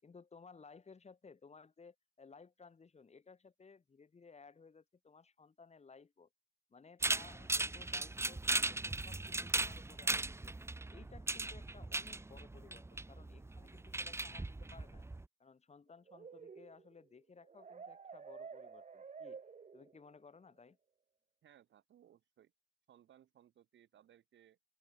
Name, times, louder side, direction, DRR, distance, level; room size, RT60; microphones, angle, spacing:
voice 1, 0.0-6.3 6.7-10.6 10.9-15.0 15.4-19.4 19.7-20.8, left 5 dB, 35° left, 5.6 m, -59 dB
sound 1, 7.0-15.2, right 2 dB, 15° right, 1.0 m, -38 dB
sound 2, 16.1-20.2, right 5 dB, 35° right, 2.3 m, -51 dB
voice 2, 21.4-22.5 22.9-24.6, right 10 dB, 70° right, 5.1 m, -65 dB
open air
cardioid pair, 90°, 20 cm